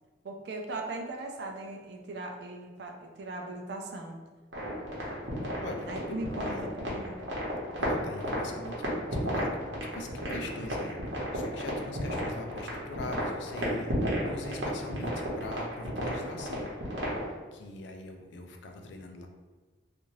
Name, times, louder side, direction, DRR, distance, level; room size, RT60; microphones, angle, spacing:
voice 1, 0.2-4.2 5.9-7.2, right 2 dB, 65° right, 2 dB, 0.4 m, -39 dB
sound 1, 4.5-17.3, equal, 80° right, 0.9 m, -33 dB
voice 2, 5.6-6.7 7.8-9.6 9.9-16.7 17.0-17.1 17.5-19.3, left 2 dB, 75° left, 4 dB, 0.4 m, -42 dB
2.6 x 2.5 x 3.0 m, 1.3 s
head